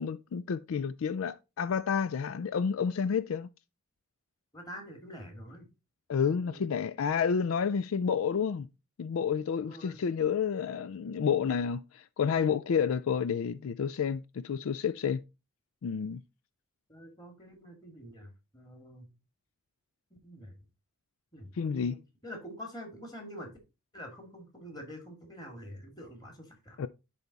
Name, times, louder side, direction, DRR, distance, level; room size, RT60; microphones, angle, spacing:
voice 1, 0.0-3.5 6.1-8.7 9.0-15.2 15.8-16.2 21.6-22.0 26.8-26.9, left 6 dB, 70° left, 0.4 m, -30 dB
voice 2, 4.5-5.7 6.2-6.7 7.3-7.7 9.6-10.0 16.9-19.1 20.2-20.5 21.3-23.5 23.9-26.8, equal, 20° left, 2.0 m, -46 dB
10.5 x 3.5 x 4.0 m
head